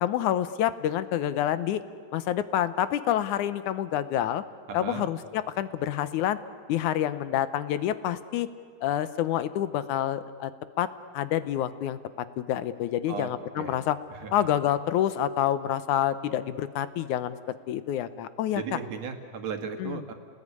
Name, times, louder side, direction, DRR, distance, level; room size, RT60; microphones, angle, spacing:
voice 1, 0.0-1.8 2.1-4.4 4.7-6.4 6.7-8.5 8.8-10.5 10.8-10.9 11.1-12.0 12.4-14.0 14.3-17.4 17.7-18.6 19.8-20.0, left 11 dB, 70° left, 14 dB, 2.0 m, -27 dB
voice 2, 4.7-5.0 13.1-13.3 13.6-13.8 14.1-14.5 18.5-20.1, right 6 dB, 50° right, 6 dB, 2.8 m, -36 dB
30.0 x 20.0 x 9.7 m, 2.1 s
omnidirectional pair, 4.1 m